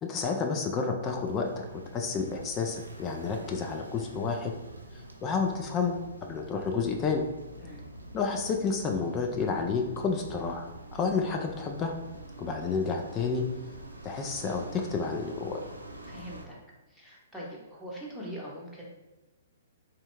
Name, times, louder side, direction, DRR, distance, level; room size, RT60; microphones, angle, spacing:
voice 1, 0.0-1.6 1.9-4.5 4.9-5.9 6.2-7.2 8.1-10.6 10.9-11.9 12.4-13.4 14.0-15.6, left 5 dB, 25° left, 3 dB, 0.4 m, -30 dB
sound 1, 1.0-16.4, right 1 dB, 90° right, 0.6 m, -46 dB
voice 2, 16.0-16.5 16.9-18.8, equal, ahead, -6 dB, 1.0 m, -42 dB
3.6 x 2.8 x 3.2 m, 1.0 s
figure-of-eight pair, 120°, 0 cm